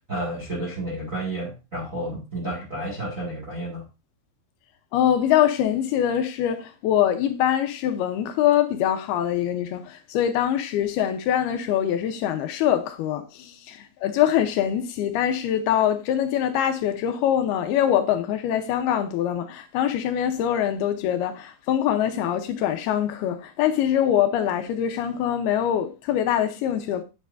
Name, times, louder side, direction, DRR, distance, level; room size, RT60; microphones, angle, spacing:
voice 1, 0.1-3.8, right 1 dB, 35° right, 1.3 m, -31 dB
voice 2, 4.9-27.0, left 10 dB, 80° left, 2.6 m, -23 dB
9.8 x 7.8 x 2.6 m
omnidirectional pair, 4.7 m